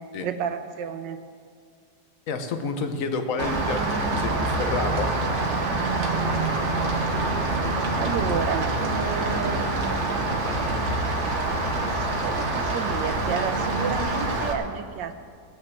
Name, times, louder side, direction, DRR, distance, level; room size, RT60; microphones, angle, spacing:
voice 1, 0.2-1.2 7.9-10.3 11.8-15.1, right 7 dB, 85° right, 8 dB, 1.6 m, -31 dB
voice 2, 2.3-5.1, left 4 dB, 55° left, 6 dB, 1.3 m, -29 dB
Rain, 3.4-14.5, right 2 dB, 45° right, 1.6 m, -26 dB
19.0 x 6.5 x 7.4 m, 2.2 s
omnidirectional pair, 1.9 m